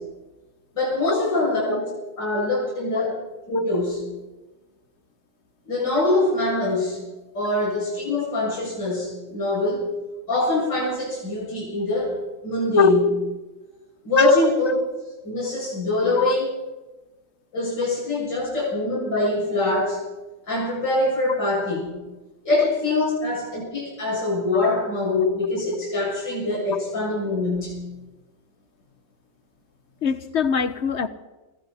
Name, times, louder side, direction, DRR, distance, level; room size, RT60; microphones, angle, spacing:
voice 1, 0.7-3.2 3.5-4.0 5.7-7.0 7.3-9.8 10.3-12.1 12.4-13.0 14.0-14.7 15.2-16.5 17.5-20.0 20.5-21.9 22.4-27.8, left 2 dB, 70° left, -6 dB, 8.0 m, -23 dB
voice 2, 30.0-31.1, left 7 dB, 45° left, 12 dB, 1.0 m, -23 dB
26.0 x 26.0 x 4.3 m, 1.1 s
omnidirectional pair, 2.0 m